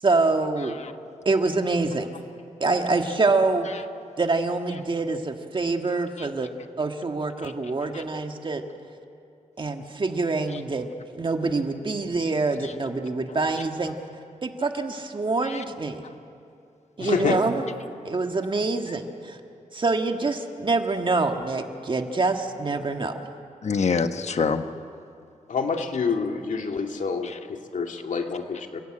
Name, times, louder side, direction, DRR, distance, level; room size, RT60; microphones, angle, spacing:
voice 1, 0.0-0.7 1.2-2.1 2.6-3.7 4.2-6.5 6.8-8.6 9.6-10.9 11.1-14.0 14.4-16.0 17.0-17.6 18.0-19.4 19.7-23.2, right 3 dB, 40° right, 5 dB, 1.7 m, -25 dB
voice 2, 17.0-17.4 25.5-28.8, left 5 dB, 75° left, 3 dB, 2.2 m, -27 dB
voice 3, 23.6-24.7 27.2-27.4, left 5 dB, 60° left, 8 dB, 1.2 m, -27 dB
29.0 x 16.5 x 8.8 m, 2.6 s
wide cardioid pair, 115°, 13 cm